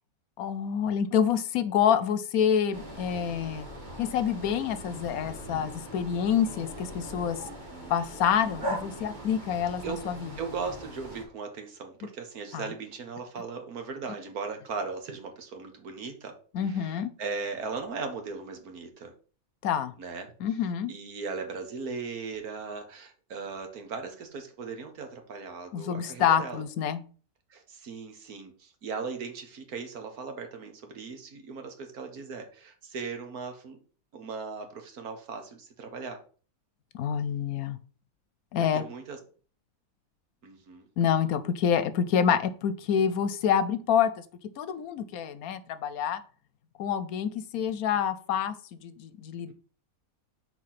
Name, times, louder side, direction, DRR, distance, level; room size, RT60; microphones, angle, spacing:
voice 1, 0.4-3.7 4.0-7.4 7.9-10.3 12.5-12.6 16.5-17.1 19.6-19.9 20.4-20.9 25.7-27.0 36.9-37.8 38.5-38.8 41.0-44.1 44.6-46.2 46.8-48.5 48.8-49.5, left 8 dB, 80° left, 13 dB, 1.2 m, -27 dB
sound 1, 2.7-11.2, equal, 30° right, 2.9 m, -40 dB
voice 2, 7.5-8.0 9.8-10.1 10.4-16.4 16.6-19.1 20.0-20.3 20.9-26.6 27.5-33.8 34.1-36.2 38.6-39.2 40.4-40.9, right 4 dB, 90° right, 6 dB, 1.8 m, -38 dB
6.2 x 4.4 x 5.8 m, 0.40 s
omnidirectional pair, 1.5 m